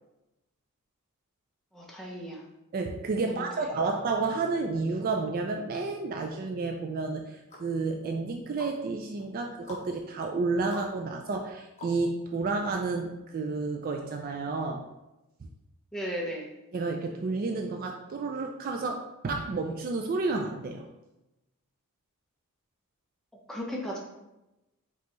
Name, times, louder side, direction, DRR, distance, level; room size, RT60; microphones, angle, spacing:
voice 1, 1.7-2.4 3.2-3.5 15.9-16.5 23.5-24.0, equal, ahead, -3 dB, 0.7 m, -35 dB
voice 2, 2.7-14.8 16.7-20.9, right 3 dB, 40° right, 3 dB, 0.3 m, -31 dB
sound 1, 7.0-12.4 12.8-12.9, left 1 dB, 30° left, 1.1 m, -49 dB
5.2 x 2.8 x 3.0 m, 0.96 s
head